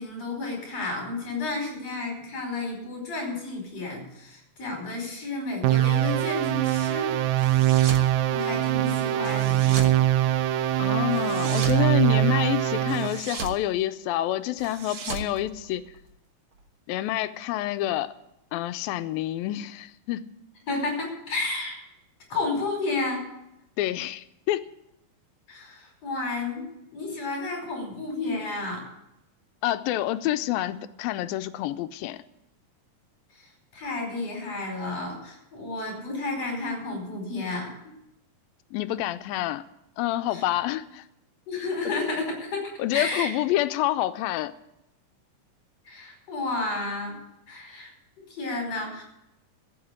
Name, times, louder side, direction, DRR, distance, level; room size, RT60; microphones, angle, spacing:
voice 1, 0.0-7.1 8.3-9.9 20.7-21.8 22.3-23.3 25.5-28.8 33.3-37.9 40.3-40.4 41.5-43.3 45.9-47.2 47.5-47.9 48.2-49.0, left 2 dB, 45° left, 0 dB, 6.0 m, -32 dB
sound 1, 5.6-13.2, right 13 dB, 80° right, 1.8 m, -23 dB
sound 2, 7.4-8.1 9.2-10.0 11.1-11.8 12.9-13.6 14.6-16.1, right 4 dB, 55° right, 1.4 m, -36 dB
voice 2, 10.8-15.8 16.9-18.1 18.5-20.3 23.8-24.6 29.6-32.2 38.7-39.6 40.0-41.1 42.8-44.5, left 14 dB, 90° left, 11 dB, 2.4 m, -28 dB
14.5 x 8.1 x 8.6 m, 0.85 s
omnidirectional pair, 4.1 m